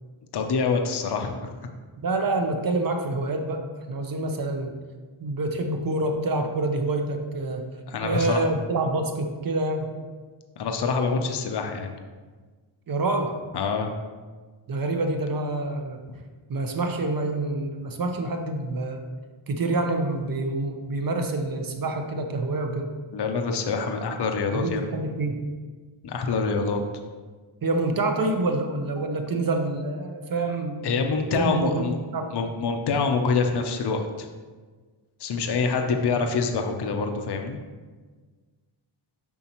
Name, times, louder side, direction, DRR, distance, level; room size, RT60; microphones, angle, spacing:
voice 1, 0.3-1.7 7.9-8.5 10.6-11.9 13.5-13.9 23.1-24.9 26.0-26.8 30.8-32.0 32.3-34.3 35.2-37.6, left 4 dB, 55° left, 4 dB, 0.7 m, -26 dB
voice 2, 2.0-4.8 5.2-9.9 12.9-13.3 14.7-16.0 16.5-19.0 19.5-22.9 24.5-25.4 27.6-30.8 31.3-32.3 35.8-36.0, right 2 dB, 45° right, 5 dB, 0.8 m, -27 dB
7.1 x 5.3 x 3.0 m, 1.4 s
wide cardioid pair, 105°, 48 cm